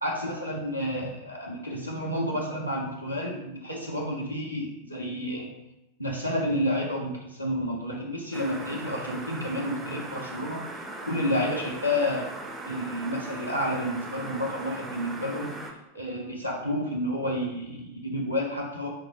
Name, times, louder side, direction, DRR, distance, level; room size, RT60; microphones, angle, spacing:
voice 1, 0.0-5.5 6.0-10.6 11.0-12.3 12.6-15.5 15.9-18.9, left 1 dB, 90° left, -3 dB, 0.4 m, -30 dB
sound 1, 8.3-15.7, right 2 dB, 15° right, 0.4 m, -39 dB
3.6 x 2.0 x 2.5 m, 0.89 s
figure-of-eight pair, 90°, 0 cm